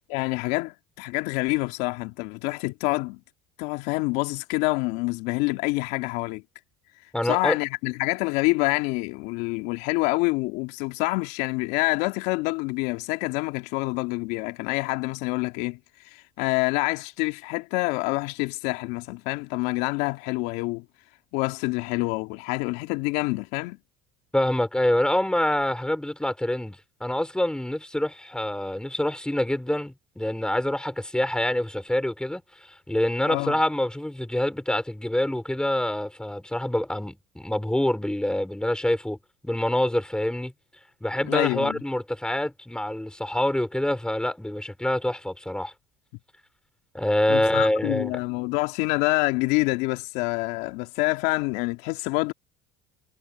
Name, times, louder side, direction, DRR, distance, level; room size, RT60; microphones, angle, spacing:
voice 1, 0.1-3.2 3.6-6.4 7.2-15.8 16.4-20.8 21.3-23.8 33.3-33.6 41.3-41.8 47.3-52.3, left 24 dB, 70° left, 2.5 m, -27 dB
voice 2, 7.1-7.6 24.3-32.4 32.9-39.2 39.4-40.5 41.0-45.7 46.9-48.2, left 1 dB, 5° left, 5.5 m, -26 dB
hypercardioid pair, 80°, 17 cm